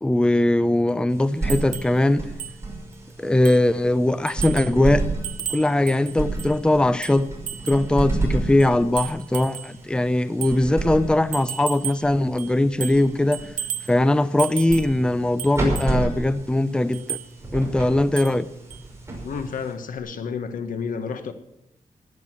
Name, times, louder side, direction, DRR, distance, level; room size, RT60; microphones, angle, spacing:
voice 1, 0.0-2.2 3.2-5.0 5.5-7.3 7.7-13.5 13.9-17.2 17.5-18.5, left 1 dB, 5° left, 14 dB, 0.6 m, -20 dB
sound 1, 1.1-20.0, right 2 dB, 20° right, 5.7 m, -32 dB
sound 2, 1.5-2.0 2.4-2.6 2.9-3.0 3.4-3.7 4.3-4.8 5.2-6.6 7.0-7.9 8.6-9.7 10.4-10.6 11.3-12.1 12.4-13.1 13.3-13.9 14.4-15.0 15.4-15.9 16.9-17.3 18.2-18.4 18.7-18.8, right 9 dB, 75° right, 0.6 m, -33 dB
voice 2, 19.2-21.3, left 6 dB, 80° left, 9 dB, 1.5 m, -30 dB
17.0 x 11.0 x 6.1 m, 0.83 s
wide cardioid pair, 110°, 14 cm